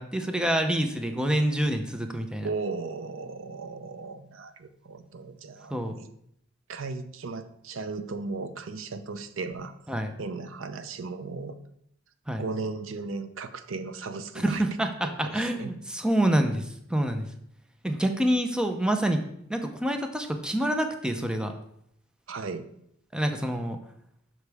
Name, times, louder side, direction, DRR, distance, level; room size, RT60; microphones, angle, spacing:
voice 1, 0.0-2.5 5.7-6.0 9.9-10.1 12.3-12.4 14.4-17.3 17.8-19.2 19.5-21.5 23.1-23.8, right 1 dB, 5° right, 6 dB, 0.6 m, -27 dB
voice 2, 2.4-6.1 6.7-9.7 10.2-11.6 12.4-14.6 15.0-15.7 22.3-22.7, right 4 dB, 80° right, 11 dB, 0.6 m, -36 dB
8.1 x 6.0 x 3.4 m, 0.71 s
head